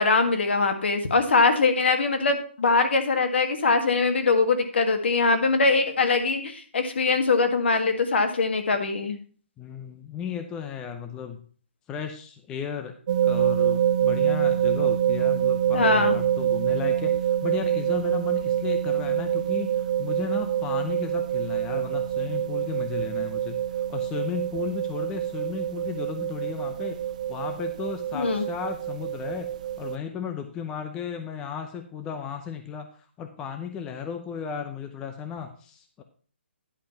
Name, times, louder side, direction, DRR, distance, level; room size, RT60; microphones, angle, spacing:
voice 1, 0.0-9.2 15.7-16.1 28.1-28.4, left 4 dB, 65° left, 7 dB, 1.8 m, -22 dB
voice 2, 9.6-11.4 11.9-12.9 13.2-27.0 27.3-29.5 29.8-32.9 33.2-36.0, left 7 dB, 10° left, 6 dB, 0.6 m, -35 dB
sound 1, 13.1-30.0, right 10 dB, 40° right, 0.4 m, -26 dB
10.5 x 5.3 x 5.6 m, 0.42 s
hypercardioid pair, 165°, 6 cm